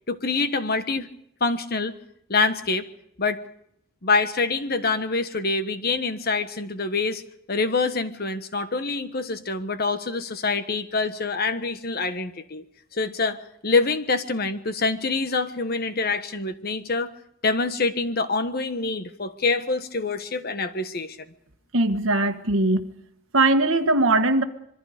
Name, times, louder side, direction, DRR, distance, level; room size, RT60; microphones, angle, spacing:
voice 1, 0.1-1.1 1.4-1.9 2.3-2.9 3.2-3.4 4.0-7.2 7.5-12.6 12.9-17.1 17.4-21.2, left 3 dB, 50° left, 10 dB, 1.3 m, -25 dB
voice 2, 21.7-22.9 23.3-24.4, right 2 dB, 85° right, 8 dB, 1.5 m, -20 dB
26.0 x 22.5 x 5.1 m, 0.73 s
head